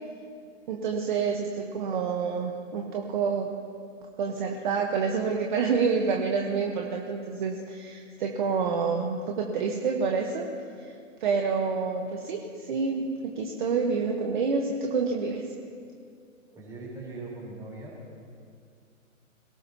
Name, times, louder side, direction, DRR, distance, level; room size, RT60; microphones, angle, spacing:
voice 1, 0.7-3.5 4.2-10.4 10.8-10.9 11.2-15.4, right 5 dB, 35° right, 1 dB, 1.2 m, -28 dB
voice 2, 16.5-17.9, right 3 dB, 10° right, -6 dB, 4.0 m, -40 dB
27.0 x 18.0 x 2.9 m, 2.3 s
hypercardioid pair, 170°, 41 cm